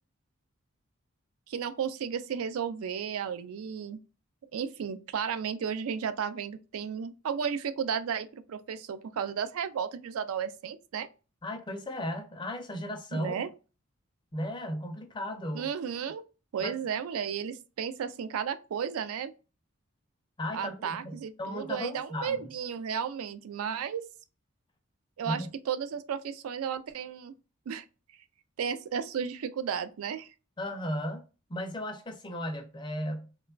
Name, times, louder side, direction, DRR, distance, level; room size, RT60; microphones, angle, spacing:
voice 1, 1.5-4.0 4.5-11.1 13.1-13.5 15.5-16.2 16.5-19.3 20.5-24.0 25.2-27.3 27.7-27.8 28.6-30.3, right 7 dB, 80° right, 0.3 m, -33 dB
voice 2, 11.4-13.4 14.3-15.7 16.6-16.7 20.4-22.5 25.2-25.5 30.6-31.2 31.5-33.3, left 1 dB, 20° left, 0.4 m, -35 dB
2.9 x 2.2 x 2.3 m
head